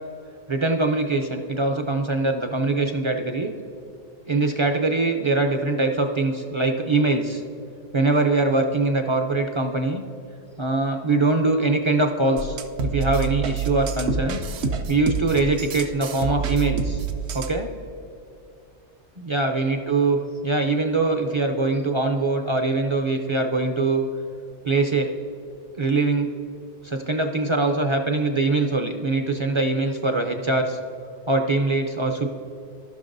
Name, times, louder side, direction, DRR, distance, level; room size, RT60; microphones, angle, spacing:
voice 1, 0.5-3.5 4.3-7.4 7.9-10.0 10.6-12.6 12.8-14.4 14.9-17.0 17.3-17.7 19.2-24.1 24.6-25.1 25.8-26.3 26.8-30.8 31.3-32.3, right 3 dB, 40° right, 4 dB, 0.4 m, -22 dB
sound 1, 12.4-17.6, right 5 dB, 70° right, 0.9 m, -27 dB
16.0 x 5.9 x 2.6 m, 2.6 s
omnidirectional pair, 1.2 m